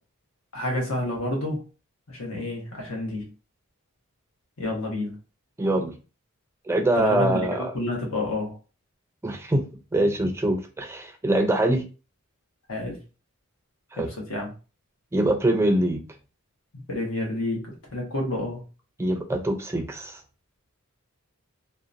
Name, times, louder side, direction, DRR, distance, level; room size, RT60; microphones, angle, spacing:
voice 1, 0.5-1.6 2.1-3.3 4.6-5.2 6.9-8.6 12.7-13.0 14.0-14.5 16.7-18.6, left 2 dB, 70° left, 0 dB, 1.0 m, -29 dB
voice 2, 5.6-6.0 6.7-7.7 9.2-9.6 9.9-11.8 13.9-14.1 15.1-16.0 19.0-20.2, right 1 dB, 10° right, 4 dB, 0.3 m, -24 dB
2.7 x 2.1 x 2.4 m, 0.33 s
head